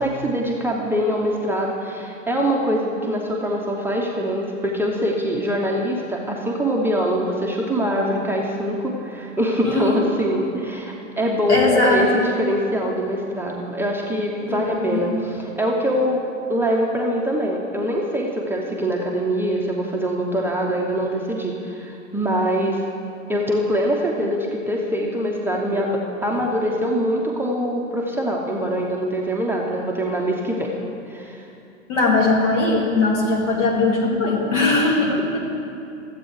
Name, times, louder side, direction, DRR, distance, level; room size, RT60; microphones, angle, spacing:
voice 1, 0.0-16.2 16.5-22.8 23.3-30.7 31.1-31.5, equal, 5° right, -3 dB, 0.7 m, -23 dB
voice 2, 9.6-10.0 11.5-12.2 14.5-15.0 31.9-35.4, left 2 dB, 65° left, -1 dB, 2.1 m, -20 dB
14.0 x 8.1 x 3.2 m, 2.7 s
figure-of-eight pair, 100°, 39 cm